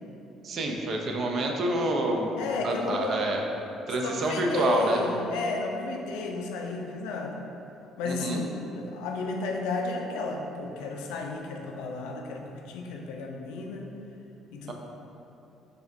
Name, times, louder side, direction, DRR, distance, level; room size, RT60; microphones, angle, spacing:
voice 1, 0.4-2.3 2.6-3.4 3.9-5.0 8.1-8.4 14.7-14.8, right 2 dB, 55° right, 1 dB, 0.4 m, -27 dB
voice 2, 2.4-3.2 4.0-7.4 8.0-13.9 14.5-14.7, left 3 dB, 90° left, 2 dB, 0.3 m, -33 dB
4.9 x 2.3 x 2.5 m, 2.8 s
supercardioid pair, 85°, 0 cm